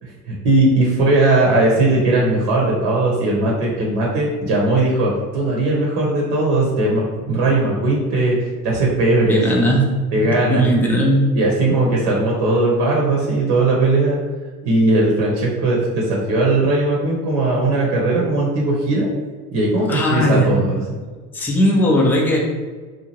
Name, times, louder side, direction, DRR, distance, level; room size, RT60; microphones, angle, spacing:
voice 1, 0.0-9.6 10.1-10.7 11.3-14.2 14.6-19.1 19.5-21.0, right 2 dB, 55° right, -2 dB, 0.9 m, -18 dB
voice 2, 9.3-9.8 10.1-11.3 19.9-20.6 21.3-22.4, equal, 5° left, -2 dB, 0.4 m, -17 dB
2.7 x 2.4 x 2.9 m, 1.4 s
hypercardioid pair, 75°, 48 cm